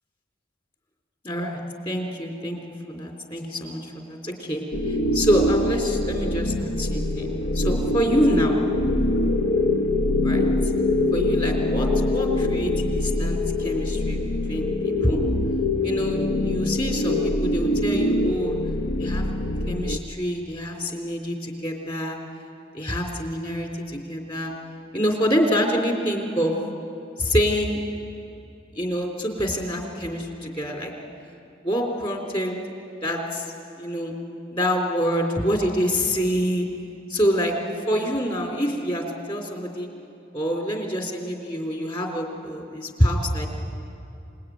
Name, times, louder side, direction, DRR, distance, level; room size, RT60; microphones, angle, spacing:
voice 1, 1.2-1.6 1.9-2.6 2.9-8.6 10.2-10.5 11.1-14.2 14.5-15.2 15.8-18.6 19.0-19.2 19.7-22.2 22.7-24.5 24.9-26.5 27.2-27.8 28.8-30.9 31.6-32.6 33.0-33.5 33.8-34.1 34.5-36.7 37.1-37.5 37.9-39.9 40.3-43.5, equal, 25° left, 1 dB, 3.5 m, -26 dB
sound 1, 4.7-20.0, left 2 dB, 80° left, 1.0 m, -24 dB
27.5 x 20.0 x 9.4 m, 2.6 s
head